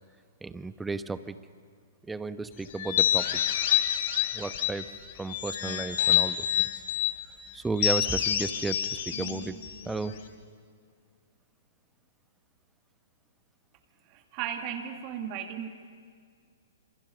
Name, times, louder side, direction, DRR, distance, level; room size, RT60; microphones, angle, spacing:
voice 1, 0.4-1.4 2.1-3.4 4.3-4.9 5.2-6.8 7.5-9.6 9.9-10.2, right 3 dB, 5° right, 13 dB, 0.9 m, -34 dB
sound 1, 2.8-4.9 5.3-7.2 7.8-10.3, left 10 dB, 45° left, 3.1 m, -27 dB
voice 2, 14.1-15.7, right 9 dB, 35° right, 5 dB, 2.0 m, -35 dB
28.5 x 27.0 x 6.7 m, 2.1 s
figure-of-eight pair, 115°, 0 cm